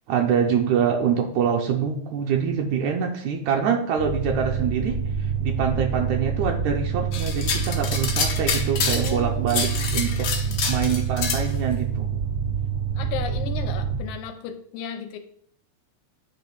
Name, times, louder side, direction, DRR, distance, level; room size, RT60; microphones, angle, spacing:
voice 1, 0.1-5.0 5.4-10.3 10.7-12.1, right 7 dB, 80° right, 2 dB, 2.0 m, -25 dB
sound 1, 4.0-14.0, right 6 dB, 35° right, 0.6 m, -27 dB
sound 2, 7.1-9.2 9.5-11.4, left 5 dB, 65° left, 1.5 m, -27 dB
voice 2, 9.0-10.6 13.0-15.2, left 9 dB, 85° left, 7 dB, 2.1 m, -36 dB
9.1 x 3.1 x 4.6 m, 0.63 s
omnidirectional pair, 3.5 m